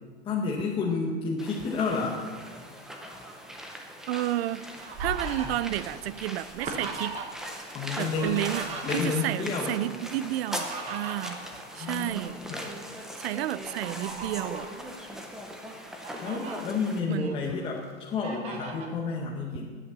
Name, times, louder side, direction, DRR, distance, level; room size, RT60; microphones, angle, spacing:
voice 1, 0.2-2.2 7.7-8.3 8.8-9.7 11.7-12.7 16.2-19.8, left 4 dB, 15° left, -2 dB, 0.9 m, -30 dB
sound 1, 1.4-17.0, equal, ahead, 0.5 m, -40 dB
voice 2, 4.1-4.7 5.0-7.1 8.0-8.7 8.9-11.4 11.7-12.4 13.2-14.7 17.1-17.4, right 14 dB, 75° right, 18 dB, 0.5 m, -31 dB
Fowl, 4.2-7.5 7.8-9.3 10.2-12.3 12.8-13.0 13.6-14.7 15.3-15.4 15.8-16.6 17.1-17.8 18.2-18.9, right 3 dB, 20° right, 1.0 m, -39 dB
9.7 x 8.3 x 6.7 m, 1.5 s
supercardioid pair, 170°, 31 cm